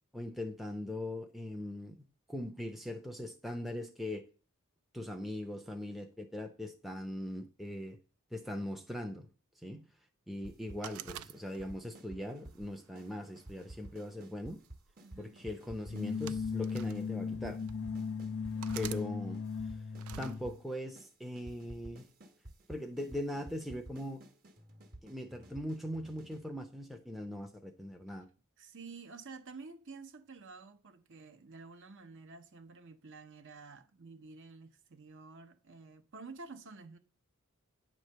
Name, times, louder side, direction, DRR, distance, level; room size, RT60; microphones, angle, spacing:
voice 1, 0.1-2.0 2.3-4.2 4.9-8.0 8.3-9.3 9.6-9.9 10.3-14.6 15.2-17.6 18.7-19.4 20.1-22.1 22.7-24.2 25.0-28.3, left 1 dB, ahead, 0.5 m, -40 dB
sound 1, 10.4-11.1 11.3-12.6 12.9-13.1 13.4-16.6 16.9-17.1 17.3-19.1 19.3-20.6 20.9-21.1 21.4-26.4, right 1 dB, 40° right, 1.1 m, -52 dB
sound 2, 10.8-11.9 12.5-13.7 14.6-14.9 15.9-17.0 17.7-17.8 18.6-19.0 20.0-20.4, right 11 dB, 75° right, 0.4 m, -47 dB
voice 2, 15.0-15.4 18.5-18.9 28.6-37.0, right 4 dB, 55° right, 0.8 m, -50 dB
sound 3, 15.8-20.6, left 5 dB, 60° left, 0.6 m, -37 dB
9.3 x 3.2 x 6.5 m
head